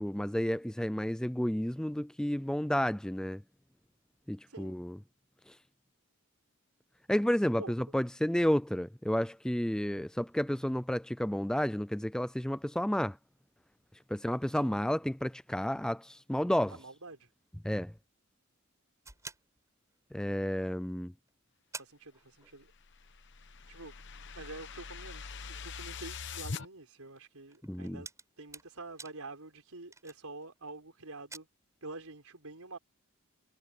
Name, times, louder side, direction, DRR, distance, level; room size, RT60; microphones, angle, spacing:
voice 1, 0.0-3.4 4.3-5.0 7.1-13.2 14.1-16.8 17.6-17.9 20.1-21.1 27.6-28.0, equal, 5° left, 0.3 m, -31 dB
voice 2, 7.4-7.7 14.6-14.7 16.7-17.3 21.8-22.7 23.7-23.9 24.3-28.1 28.4-31.5 31.8-32.8, right 2 dB, 80° right, 4.6 m, -47 dB
sound 1, 19.0-20.4 21.0-21.1 21.3-21.4 21.7-22.9 23.2-23.3 23.9-30.7 31.1-31.4, right 4 dB, 15° right, 7.8 m, -51 dB
sound 2, 22.6-26.6, left 5 dB, 55° left, 1.0 m, -43 dB
head